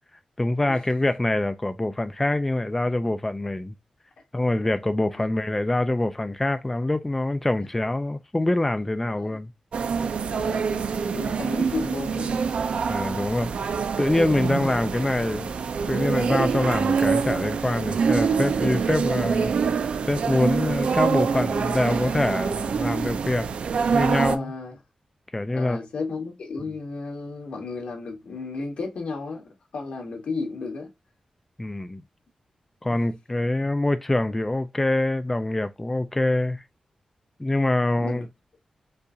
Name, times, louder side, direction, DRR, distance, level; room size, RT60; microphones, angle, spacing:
voice 1, 0.4-3.7 4.3-9.5 12.9-15.5 15.9-19.5 20.1-23.5 23.9-24.5 25.3-25.8 31.6-32.0 32.8-36.6 37.4-38.3, left 2 dB, 10° left, 0.3 m, -25 dB
sound 1, 9.7-24.4, right 6 dB, 65° right, 0.4 m, -25 dB
voice 2, 10.3-10.7 11.1-12.5 19.1-19.2 23.8-23.9 24.3-24.8 25.5-30.9 38.0-38.3, left 3 dB, 75° left, 2.0 m, -33 dB
5.4 x 2.4 x 3.8 m
wide cardioid pair, 175°, 2 cm